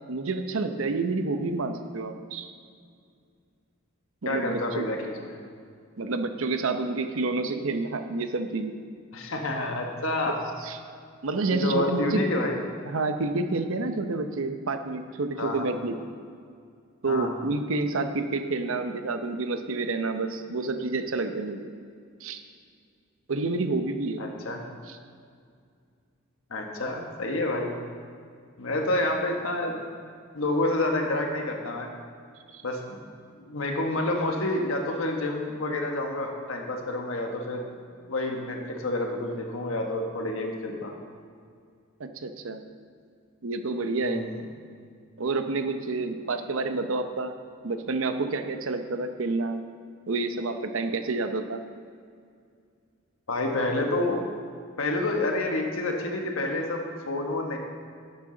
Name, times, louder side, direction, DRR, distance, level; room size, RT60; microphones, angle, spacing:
voice 1, 0.1-2.5 4.2-4.9 6.0-8.7 10.6-10.8 11.2-12.2 12.8-16.1 17.0-21.7 22.2-22.4 23.3-24.3 24.9-25.0 32.5-32.6 42.0-42.6 43.4-44.3 45.2-47.3 47.6-49.6 50.1-51.6, right 3 dB, 75° right, 7 dB, 0.7 m, -29 dB
voice 2, 4.2-5.4 9.1-10.4 11.5-12.6 15.4-15.7 17.1-17.3 24.2-24.6 26.5-27.8 28.6-29.8 30.3-31.9 32.6-32.8 33.5-40.9 44.0-44.4 53.3-54.3 54.8-57.6, left 2 dB, 75° left, 2 dB, 1.2 m, -28 dB
11.5 x 9.7 x 3.9 m, 2.2 s
head